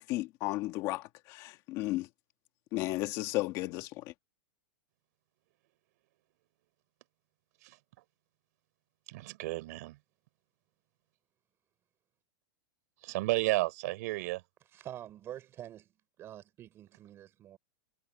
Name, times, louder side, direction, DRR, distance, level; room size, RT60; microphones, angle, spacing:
voice 1, 0.0-2.1 2.7-4.1, left 18 dB, 30° left, 1.7 m, -34 dB
voice 2, 9.1-10.0 13.0-14.4, right 20 dB, 45° right, 4.9 m, -32 dB
voice 3, 14.7-15.9 16.2-17.6, right 12 dB, 20° right, 5.8 m, -46 dB
supercardioid pair, 175°, 12 cm